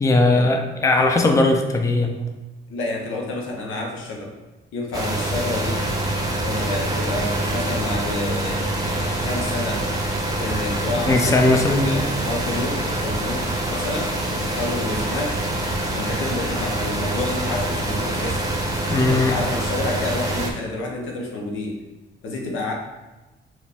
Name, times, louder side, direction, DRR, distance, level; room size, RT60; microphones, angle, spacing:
voice 1, 0.0-2.3 11.1-12.1 18.9-19.4, left 2 dB, 15° left, 4 dB, 0.4 m, -18 dB
voice 2, 2.7-4.3 4.7-5.8 6.4-9.8 10.1-15.3 15.9-18.5 19.0-21.8 22.2-22.7, left 2 dB, 85° left, -1 dB, 0.8 m, -29 dB
sound 1, 4.9-20.5, right 1 dB, 20° right, 0.7 m, -25 dB
4.7 x 2.3 x 3.4 m, 1.1 s
cardioid pair, 90°, 20 cm